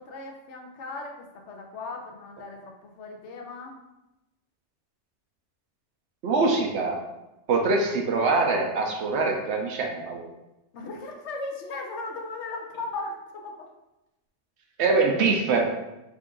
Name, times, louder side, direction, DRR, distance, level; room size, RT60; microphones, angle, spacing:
voice 1, 0.0-3.8 10.7-13.7, left 3 dB, 70° left, 1 dB, 0.9 m, -37 dB
voice 2, 6.2-7.0 7.5-10.2 14.8-15.6, right 3 dB, 70° right, 2 dB, 0.8 m, -23 dB
3.7 x 2.5 x 3.6 m, 0.95 s
omnidirectional pair, 1.3 m